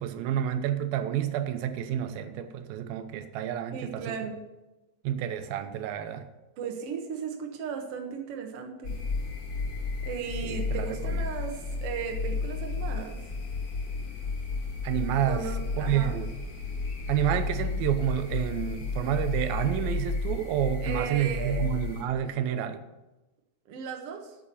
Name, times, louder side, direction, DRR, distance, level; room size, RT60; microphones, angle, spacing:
voice 1, 0.0-4.2 5.0-6.2 10.4-11.2 14.8-15.4 15.8-16.3 17.1-22.8, right 10 dB, 90° right, 9 dB, 2.6 m, -29 dB
voice 2, 3.7-4.4 6.6-8.9 10.0-13.2 15.3-16.2 20.8-21.7 23.7-24.4, right 6 dB, 55° right, 2 dB, 1.8 m, -36 dB
sound 1, 8.8-22.0, left 4 dB, 50° left, 1.1 m, -32 dB
Bird, 16.9-17.7 19.4-20.3, left 2 dB, 70° left, 3.9 m, -53 dB
8.7 x 7.9 x 6.8 m, 1.0 s
omnidirectional pair, 4.1 m